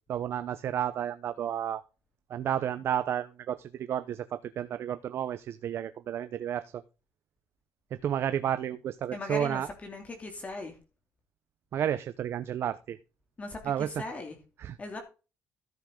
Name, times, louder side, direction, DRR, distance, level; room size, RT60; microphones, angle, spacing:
voice 1, 0.1-1.8 2.3-6.8 7.9-9.7 11.7-13.0 13.6-13.9 14.6-14.8, right 10 dB, 60° right, 0.8 m, -31 dB
voice 2, 9.1-10.8 13.4-14.4 14.8-15.0, left 2 dB, 30° left, 2.8 m, -39 dB
14.0 x 7.4 x 3.8 m
cardioid pair, 115°, 5 cm